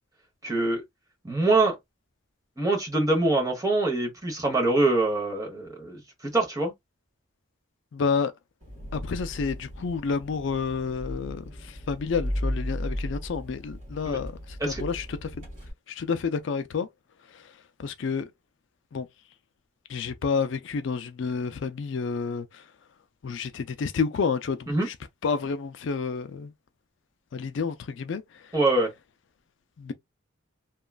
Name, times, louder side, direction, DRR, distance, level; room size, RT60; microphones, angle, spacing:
voice 1, 0.4-0.8 1.2-1.8 2.6-6.7 14.0-14.2 14.6-14.8 24.7-24.9 28.5-28.9, right 2 dB, 15° right, 1.0 m, -24 dB
voice 2, 7.9-8.3 8.9-15.5 15.9-16.9 17.2-18.3 18.9-19.1 19.9-22.7 23.2-25.0 25.2-26.5 27.3-28.6 29.8-29.9, left 5 dB, 60° left, 0.4 m, -30 dB
Engine, 8.6-15.7, equal, 35° right, 1.7 m, -35 dB
2.9 x 2.4 x 2.3 m
head